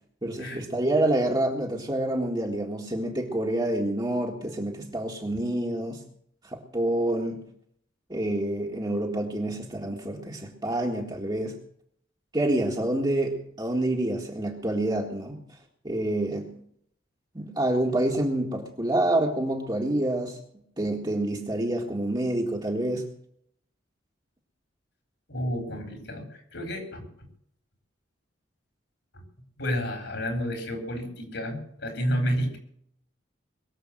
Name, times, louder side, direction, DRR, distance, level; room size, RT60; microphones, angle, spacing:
voice 1, 0.2-6.0 6.4-7.4 8.1-11.6 12.3-15.4 15.8-16.5 17.3-20.4 20.8-23.1, right 1 dB, 20° right, -1 dB, 1.8 m, -27 dB
voice 2, 25.3-27.1 29.1-29.2 29.6-32.6, equal, 60° left, 4 dB, 4.2 m, -30 dB
22.0 x 7.5 x 7.7 m, 0.66 s
head